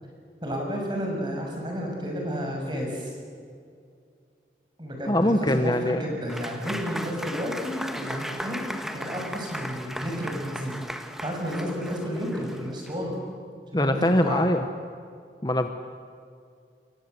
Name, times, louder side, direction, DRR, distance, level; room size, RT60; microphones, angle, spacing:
voice 1, 0.4-3.2 4.8-10.8 11.2-13.2 13.7-14.5, equal, 25° right, 1 dB, 7.0 m, -31 dB
voice 2, 5.1-6.0 13.7-14.7 15.4-15.7, left 1 dB, 25° left, 7 dB, 1.0 m, -22 dB
Applause / Crowd, 6.3-13.1, equal, ahead, 1.5 m, -37 dB
29.0 x 22.5 x 8.2 m, 2.3 s
head